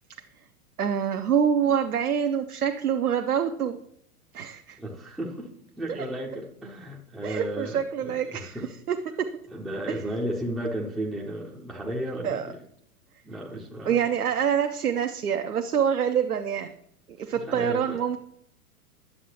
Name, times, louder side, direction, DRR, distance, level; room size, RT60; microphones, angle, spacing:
voice 1, 0.8-3.8 4.3-4.8 7.2-8.6 8.9-9.3 9.9-10.0 12.2-12.5 13.9-16.7 17.2-18.2, right 8 dB, 80° right, 6 dB, 0.7 m, -26 dB
voice 2, 4.8-5.5 5.8-8.7 9.5-12.6 13.2-14.1 17.3-18.0, right 1 dB, ahead, -2 dB, 0.4 m, -34 dB
10.0 x 7.4 x 2.8 m, 0.70 s
figure-of-eight pair, 100°, 44 cm